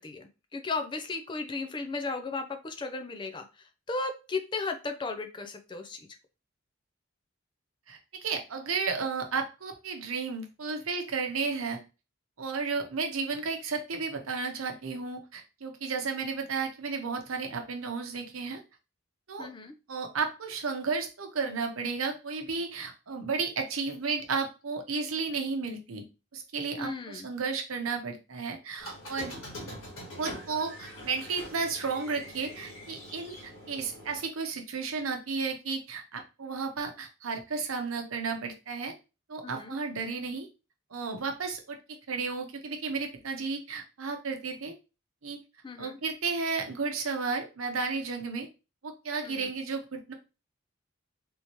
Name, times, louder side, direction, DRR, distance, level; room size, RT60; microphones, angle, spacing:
voice 1, 0.0-6.0 19.4-19.7 26.8-27.3 39.4-39.8 45.6-46.0 49.2-49.5, left 3 dB, 20° left, 6 dB, 0.4 m, -35 dB
voice 2, 7.9-11.8 12.4-18.6 19.3-19.5 19.9-26.0 26.3-29.3 30.2-38.9 39.3-40.5 40.9-41.8 42.1-44.7 45.2-45.4 45.8-48.5 48.8-50.1, right 4 dB, 85° right, 4 dB, 0.8 m, -33 dB
Squeak, 28.8-34.2, left 1 dB, 90° left, 1.7 m, -44 dB
3.5 x 2.8 x 2.9 m, 0.30 s
head